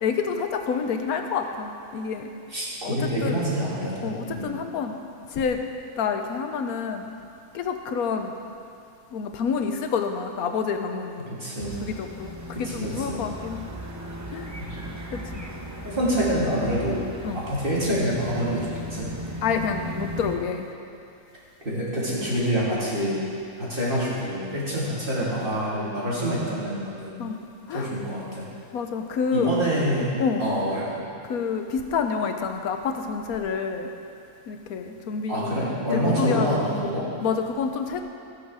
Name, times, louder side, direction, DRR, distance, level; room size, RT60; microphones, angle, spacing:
voice 1, 0.0-2.3 2.8-3.4 4.0-5.0 5.3-5.6 6.0-7.1 7.5-8.4 9.1-11.4 11.8-13.7 14.3-14.5 15.1-15.5 17.2-17.4 19.4-20.7 27.2-27.4 27.7-27.9 28.7-29.5 30.2-30.4 31.3-33.9 34.5-35.7 35.9-36.6 37.2-38.0, left 6 dB, 85° left, 5 dB, 1.3 m, -28 dB
voice 2, 2.5-4.5 11.3-11.8 12.5-13.2 14.7-14.8 15.8-17.0 17.3-19.1 21.6-23.2 23.6-27.1 27.7-28.4 29.3-30.1 30.4-31.0 35.3-37.1, equal, 35° right, -8 dB, 2.8 m, -26 dB
sound 1, 11.6-20.4, equal, 15° right, 0.6 m, -37 dB
15.0 x 6.4 x 6.3 m, 2.5 s
omnidirectional pair, 1.5 m